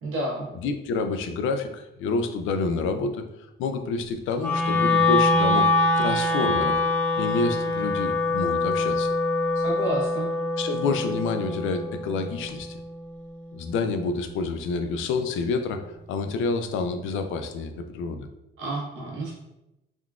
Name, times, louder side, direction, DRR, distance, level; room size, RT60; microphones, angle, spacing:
voice 1, 0.0-0.5 9.6-10.3 18.6-19.4, right 1 dB, 85° right, -4 dB, 1.1 m, -30 dB
voice 2, 0.6-3.2 3.6-6.8 7.2-9.1 10.6-12.8 13.5-15.8 16.1-18.3, left 4 dB, 80° left, 7 dB, 0.4 m, -28 dB
Wind instrument woodwind instrument, 4.4-14.6, left 2 dB, 10° left, 0.8 m, -25 dB
3.6 x 2.3 x 2.3 m, 0.91 s
cardioid pair, 90°, 20 cm